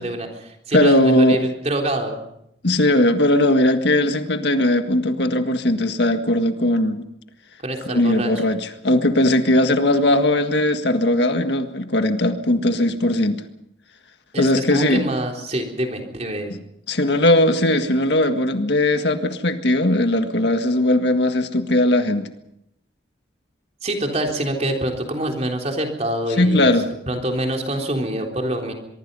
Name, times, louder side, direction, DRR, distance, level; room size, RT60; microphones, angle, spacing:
voice 1, 0.0-2.2 7.6-8.3 14.3-16.5 23.8-26.8 27.1-28.7, right 1 dB, 35° right, 2 dB, 3.8 m, -25 dB
voice 2, 0.7-1.4 2.6-7.0 7.9-13.4 14.4-15.1 16.5-16.6 16.9-22.3 26.4-26.9, left 1 dB, 65° left, 7 dB, 1.8 m, -18 dB
23.5 x 23.5 x 5.6 m, 0.79 s
head